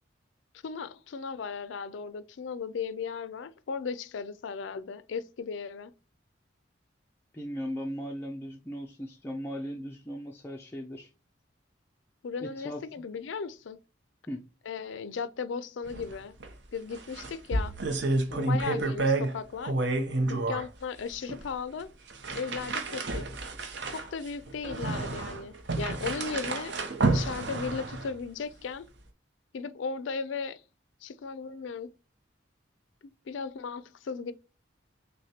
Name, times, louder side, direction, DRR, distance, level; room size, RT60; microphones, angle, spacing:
voice 1, 0.6-5.9 12.2-13.8 14.7-16.3 16.7-17.7 18.3-19.8 20.3-21.9 22.3-23.3 23.9-26.7 27.1-28.9 29.5-30.6 31.0-31.9 33.0-34.3, left 5 dB, 80° left, 0.4 m, -36 dB
voice 2, 7.3-11.1 12.4-12.8 14.3-14.4 18.3-18.5, equal, 10° left, 0.4 m, -38 dB
sound 1, 15.9-16.1 16.4-16.5 16.9-19.4 19.6-20.7 21.3-21.4 22.1-28.2, right 2 dB, 65° right, 0.7 m, -30 dB
6.3 x 2.2 x 2.8 m
head